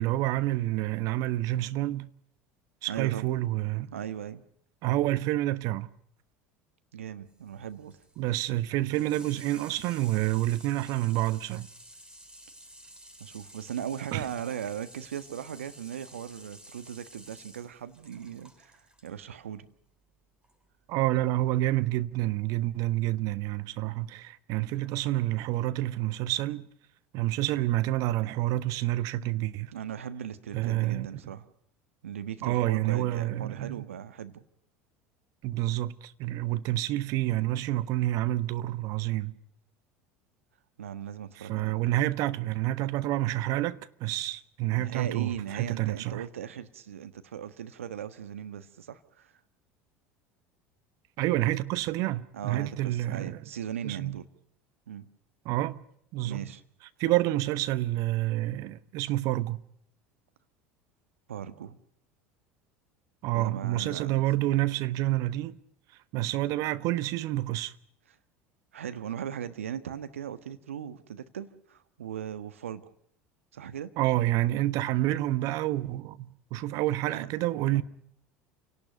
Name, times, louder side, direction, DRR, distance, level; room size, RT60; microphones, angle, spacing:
voice 1, 0.0-2.1 2.8-3.9 4.8-5.9 8.2-11.7 14.1-14.2 20.9-26.7 27.1-29.7 30.5-31.2 32.4-33.9 35.4-39.3 41.4-46.2 51.2-53.4 53.8-54.2 55.4-55.8 56.1-56.5 57.0-59.6 63.2-65.6 66.1-67.7 74.0-77.8, right 15 dB, 55° right, 1.2 m, -28 dB
voice 2, 2.9-3.3 3.9-4.4 6.9-8.0 13.2-19.7 29.7-31.4 32.0-34.4 40.8-41.8 44.8-49.3 52.3-54.2 54.9-55.1 56.2-56.6 61.3-61.8 63.3-64.1 68.7-72.8 73.5-73.9 77.1-77.3 77.7-77.8, right 9 dB, 80° right, 1.4 m, -38 dB
Water tap faucet / Sink (filling or washing), 7.3-19.1 20.4-20.5, right 1 dB, 15° right, 7.8 m, -52 dB
29.0 x 18.5 x 5.3 m
hypercardioid pair, 75°, 7 cm